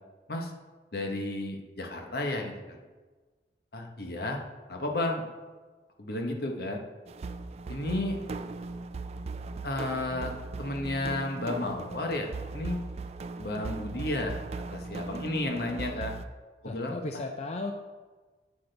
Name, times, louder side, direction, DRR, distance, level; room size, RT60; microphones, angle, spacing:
voice 1, 0.9-2.8 3.7-4.4 4.7-5.2 6.0-6.8 7.7-8.2 9.6-10.3 10.6-12.8 13.4-14.4 14.7-16.1 16.6-17.2, left 2 dB, 60° left, 3 dB, 1.0 m, -32 dB
sound 1, 7.1-16.3, right 3 dB, 35° right, 0.3 m, -38 dB
voice 2, 16.6-17.7, left 2 dB, 35° left, 4 dB, 0.4 m, -35 dB
8.4 x 7.9 x 3.3 m, 1.3 s
head